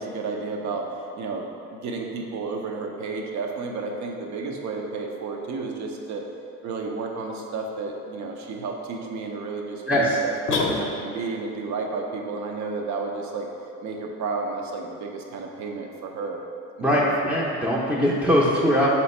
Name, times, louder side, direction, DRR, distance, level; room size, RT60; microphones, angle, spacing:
voice 1, 0.0-6.2 6.6-13.5 13.8-16.4 16.8-17.4 17.9-18.0, right 4 dB, 70° right, 1 dB, 0.6 m, -32 dB
voice 2, 9.9-10.2 16.8-18.9, equal, 5° right, -7 dB, 0.5 m, -21 dB
sound 1, 10.5-11.4, left 3 dB, 45° left, 0.6 m, -26 dB
3.4 x 3.0 x 4.2 m, 2.5 s
cardioid pair, 90°, 30 cm